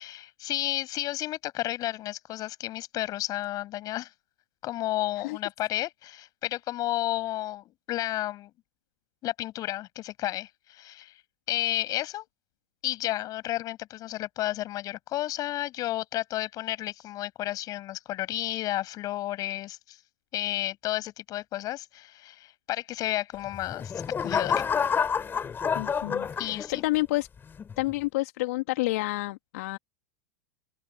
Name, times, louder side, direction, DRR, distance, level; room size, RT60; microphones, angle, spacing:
voice 1, 0.0-4.1 4.6-8.5 9.2-11.1 11.5-12.3 12.8-20.0 20.3-24.6 26.4-26.8, left 15 dB, 45° left, 7.5 m, -32 dB
sound 1, 23.5-27.0 27.6-27.9, left 6 dB, 25° left, 5.4 m, -29 dB
voice 2, 25.7-27.3 27.8-29.8, left 20 dB, 65° left, 2.9 m, -29 dB
open air
hypercardioid pair, 95°, 9 cm